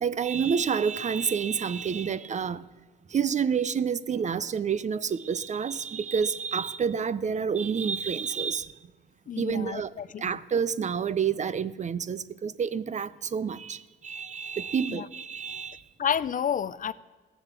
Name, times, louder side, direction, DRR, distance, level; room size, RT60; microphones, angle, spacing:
voice 1, 0.0-2.6 3.1-8.7 9.4-9.9 10.2-15.8, right 6 dB, 35° right, 0.6 m, -28 dB
voice 2, 9.3-10.3 14.8-15.1 16.0-16.9, left 8 dB, 45° left, 0.5 m, -30 dB
15.0 x 7.1 x 8.2 m
cardioid pair, 90°, 20 cm